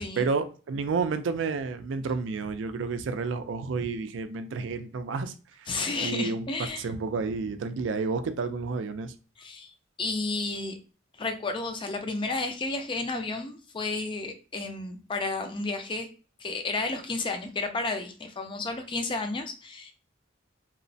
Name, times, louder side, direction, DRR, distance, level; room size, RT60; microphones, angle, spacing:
voice 1, 0.2-5.3 5.6-6.5 6.8-9.1, right 4 dB, 70° right, 0.4 m, -30 dB
voice 2, 5.7-6.9 9.4-9.7 10.0-10.8 11.2-16.1 16.4-19.9, left 3 dB, 25° left, 0.4 m, -32 dB
2.9 x 2.0 x 2.6 m
head